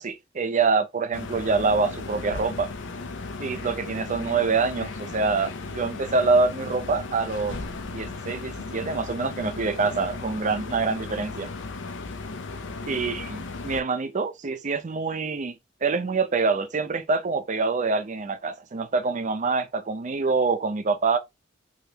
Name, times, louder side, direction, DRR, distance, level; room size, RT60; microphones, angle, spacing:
voice 1, 0.0-2.7 3.4-7.6 7.9-11.5 12.9-15.6 15.8-21.2, right 4 dB, 40° right, 0.5 m, -25 dB
sound 1, 1.1-13.8, left 3 dB, 65° left, 0.6 m, -36 dB
3.5 x 2.5 x 2.8 m
head